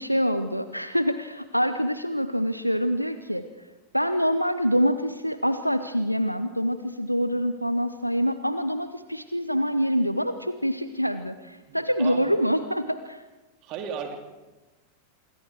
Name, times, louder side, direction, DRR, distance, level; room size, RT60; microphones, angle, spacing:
voice 1, 0.0-3.4 3.9-13.2, equal, 90° right, 11 dB, 0.7 m, -25 dB
voice 2, 11.7-12.3 13.6-14.1, right 7 dB, 40° right, 4 dB, 3.3 m, -35 dB
26.5 x 23.5 x 4.7 m, 1.1 s
figure-of-eight pair, 90°, 0 cm